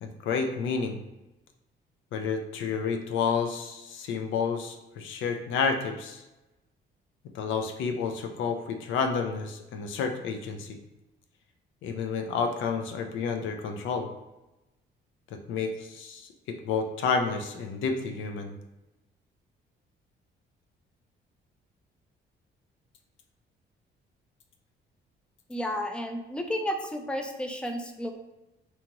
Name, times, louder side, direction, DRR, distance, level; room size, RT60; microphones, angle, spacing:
voice 1, 0.0-1.0 2.1-6.2 7.3-10.8 11.8-14.1 15.3-18.5, left 5 dB, 80° left, 4 dB, 0.4 m, -30 dB
voice 2, 25.5-28.1, equal, 5° left, 4 dB, 0.4 m, -32 dB
2.8 x 2.3 x 2.9 m, 1.0 s
cardioid pair, 90°, 20 cm